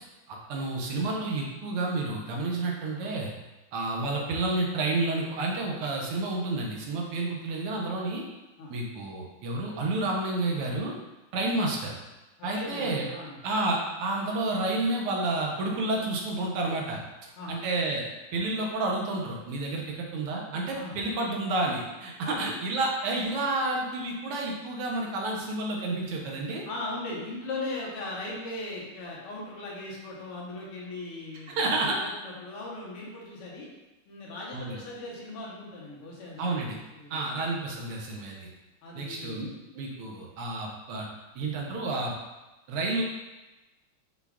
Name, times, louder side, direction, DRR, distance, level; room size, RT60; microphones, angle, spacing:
voice 1, 0.3-3.3 3.7-8.2 8.7-11.0 11.3-12.0 12.4-13.1 13.4-17.0 17.5-18.0 18.3-26.7 31.5-32.0 34.5-34.8 36.4-36.8 37.1-38.5 39.0-39.5 39.7-41.1 41.4-42.1 42.7-43.0, right 2 dB, 80° right, -1 dB, 1.7 m, -30 dB
voice 2, 12.4-13.4 17.4-17.6 20.7-21.0 22.2-22.5 26.7-33.7 34.1-37.2 38.8-39.5, left 2 dB, 85° left, -4 dB, 2.0 m, -39 dB
6.1 x 2.4 x 3.5 m, 1.1 s
omnidirectional pair, 2.4 m